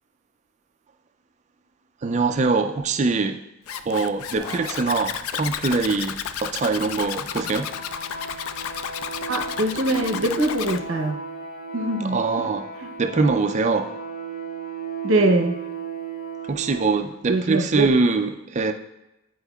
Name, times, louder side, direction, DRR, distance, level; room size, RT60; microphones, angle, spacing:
voice 1, 2.0-3.4 3.9-7.7 12.1-12.6 13.0-13.9 16.5-18.7, right 3 dB, 30° right, 6 dB, 0.3 m, -23 dB
Zipper (clothing), 3.7-10.8, left 8 dB, 70° left, 0.3 m, -32 dB
sound 1, 4.4-5.7, equal, 15° left, 1.2 m, -42 dB
sound 2, 7.4-17.0, right 5 dB, 35° left, 0.8 m, -35 dB
voice 2, 9.3-11.2 11.7-12.5 12.8-12.9 15.0-15.6 17.3-17.9, right 2 dB, 55° right, 5 dB, 0.7 m, -23 dB
10.0 x 4.4 x 2.3 m, 0.92 s
head